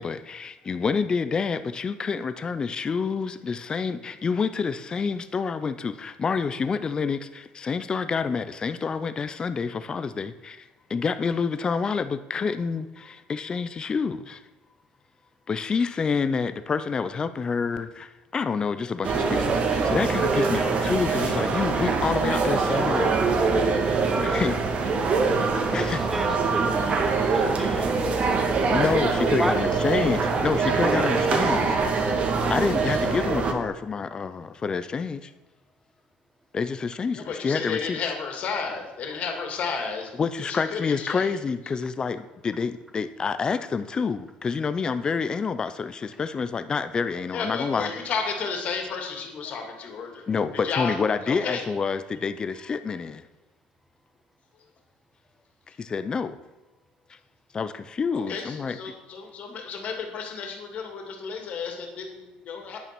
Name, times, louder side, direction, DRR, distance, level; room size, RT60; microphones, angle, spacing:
voice 1, 0.0-14.4 15.5-23.2 24.2-24.6 25.7-26.0 27.6-27.9 28.7-31.8 32.5-35.3 36.5-38.0 40.2-47.9 49.5-49.6 50.3-53.3 55.8-56.4 57.1-57.2 57.5-58.8, left 5 dB, 25° left, 11 dB, 0.6 m, -28 dB
sound 1, 19.0-33.5, right 4 dB, 45° right, 1.7 m, -24 dB
voice 2, 26.1-28.5 29.2-29.6, right 1 dB, 5° right, 7 dB, 1.3 m, -32 dB
voice 3, 37.2-40.1 40.4-41.4 47.3-50.2 50.6-50.9 51.2-51.6 58.3-62.8, left 5 dB, 50° left, 3 dB, 2.6 m, -32 dB
9.9 x 9.1 x 6.1 m, 1.1 s
cardioid pair, 130°, 3 cm